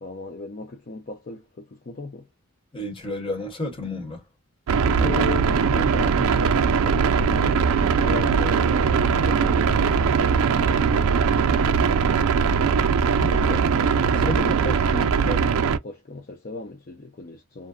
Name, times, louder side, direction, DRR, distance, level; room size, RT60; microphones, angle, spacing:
voice 1, 0.0-2.3 4.9-12.4 14.1-17.7, left 3 dB, 40° left, 0.5 m, -36 dB
voice 2, 2.7-4.2 5.0-5.1 13.2-14.5, left 2 dB, 25° left, 1.1 m, -32 dB
sound 1, 4.7-15.8, right 6 dB, 75° right, 0.3 m, -20 dB
2.5 x 2.2 x 2.4 m
head